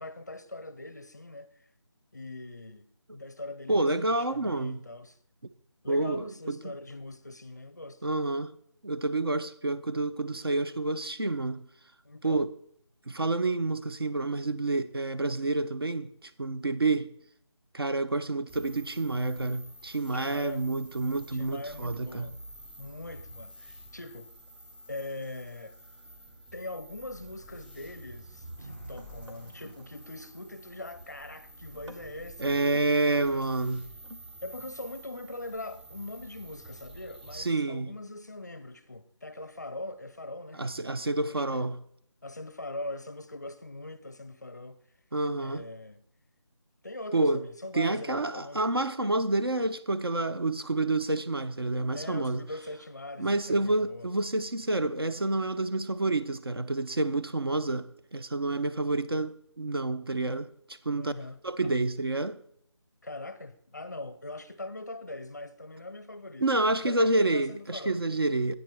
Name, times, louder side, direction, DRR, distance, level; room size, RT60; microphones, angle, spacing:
voice 1, 0.0-1.5 2.1-2.9 3.1-5.2 5.8-8.1 12.0-12.5 20.1-20.7 21.3-22.4 22.8-24.3 24.9-25.8 26.5-33.5 34.4-40.6 41.3-41.7 42.2-44.8 45.4-46.0 46.8-48.6 51.9-54.1 61.0-61.7 63.0-66.5 66.8-68.0, left 2 dB, 35° left, 0.5 m, -42 dB
voice 2, 3.7-4.8 5.9-6.6 8.0-8.5 8.8-11.6 12.2-12.5 13.1-17.1 17.7-22.3 32.4-33.8 37.3-37.9 40.6-41.8 45.1-45.7 47.1-47.4 47.7-52.4 53.2-60.5 60.9-61.1 61.4-62.4 66.4-68.5, right 2 dB, 55° right, 0.5 m, -28 dB
sound 1, 18.5-37.5, right 1 dB, 15° right, 1.8 m, -49 dB
sound 2, 26.5-26.6 27.0-30.1 30.4-30.8 31.2-31.5 31.7-32.9 33.8-34.5 34.8-34.9, equal, 80° right, 1.3 m, -54 dB
sound 3, 28.6-32.7, right 2 dB, 35° right, 1.5 m, -54 dB
10.0 x 8.9 x 3.4 m
figure-of-eight pair, 160°, 15 cm